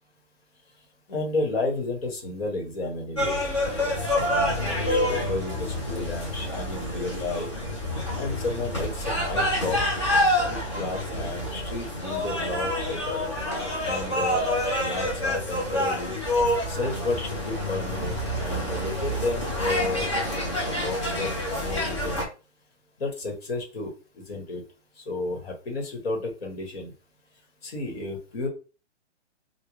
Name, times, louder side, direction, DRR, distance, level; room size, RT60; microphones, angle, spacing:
voice 1, 1.1-3.4 3.7-7.5 8.1-9.8 10.4-13.2 13.8-16.2 16.7-20.1 20.6-22.2 23.0-24.6 25.0-26.9 27.6-28.5, left 2 dB, 55° left, 1 dB, 1.3 m, -32 dB
sound 1, 3.2-22.3, left 1 dB, 25° left, 0.6 m, -27 dB
3.6 x 2.3 x 3.1 m, 0.33 s
hypercardioid pair, 180°, 36 cm